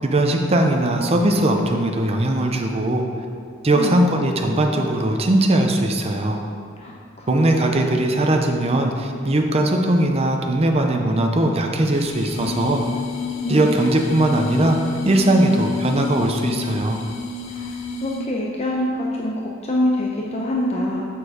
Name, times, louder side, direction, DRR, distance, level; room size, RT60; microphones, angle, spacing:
voice 1, 0.0-3.1 3.6-6.4 7.3-12.8 13.5-17.0, right 1 dB, 30° right, 2 dB, 0.6 m, -19 dB
voice 2, 6.8-7.4 13.4-13.7 17.5-21.1, left 1 dB, 35° left, -3 dB, 0.7 m, -25 dB
sound 1, 11.9-18.4, left 5 dB, 85° left, 0.9 m, -29 dB
7.3 x 6.4 x 5.0 m, 2.3 s
head